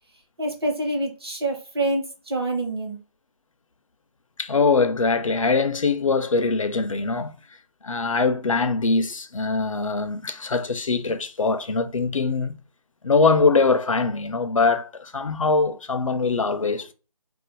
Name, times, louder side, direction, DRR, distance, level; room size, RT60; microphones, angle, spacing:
voice 1, 0.4-3.0, right 2 dB, 40° right, 0.9 m, -26 dB
voice 2, 4.4-7.3 7.8-12.6 13.0-16.9, left 4 dB, 60° left, 0.5 m, -22 dB
2.4 x 2.4 x 3.9 m
figure-of-eight pair, 175°, 19 cm